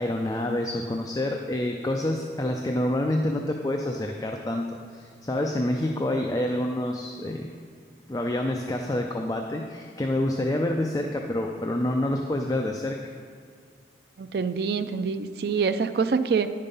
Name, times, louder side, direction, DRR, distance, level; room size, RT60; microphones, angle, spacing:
voice 1, 0.0-7.5 8.1-13.0, left 1 dB, 20° left, 2 dB, 0.4 m, -27 dB
voice 2, 14.2-16.5, right 5 dB, 60° right, 11 dB, 0.4 m, -25 dB
10.0 x 5.3 x 5.4 m, 2.2 s
head